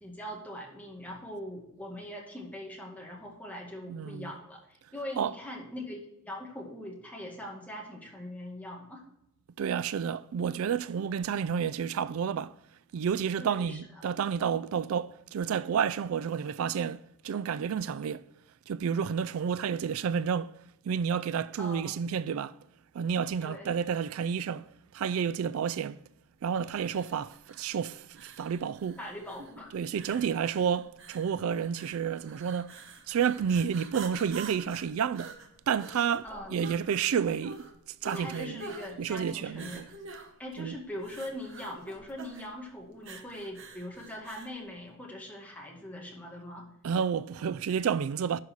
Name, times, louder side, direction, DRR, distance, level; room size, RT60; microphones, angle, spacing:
voice 1, 0.0-9.0 13.4-13.8 21.6-22.0 23.4-23.7 29.0-29.7 30.1-30.2 36.2-36.6 38.1-39.8 40.4-46.7, left 1 dB, 5° left, 2.0 m, -41 dB
voice 2, 3.9-4.3 5.2-5.3 9.6-12.5 12.9-18.3 18.7-20.6 20.8-22.6 22.9-24.7 24.9-26.0 26.4-29.0 29.7-32.8 33.1-35.3 35.7-37.7 38.0-38.6 39.0-39.9 40.6-40.7 46.8-48.4, right 7 dB, 80° right, 0.3 m, -30 dB
sound 1, 26.7-44.6, right 4 dB, 60° right, 1.3 m, -48 dB
11.0 x 5.4 x 4.7 m
head